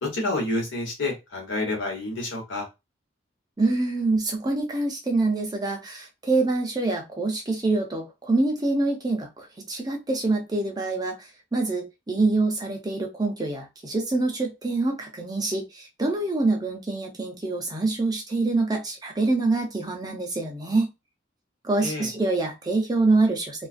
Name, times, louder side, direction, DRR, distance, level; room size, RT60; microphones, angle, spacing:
voice 1, 0.0-2.7 21.8-22.1, left 2 dB, 85° left, 0 dB, 1.2 m, -29 dB
voice 2, 3.6-20.9 21.6-23.7, right 2 dB, 20° right, 2 dB, 0.6 m, -25 dB
2.4 x 2.3 x 2.4 m, 0.23 s
head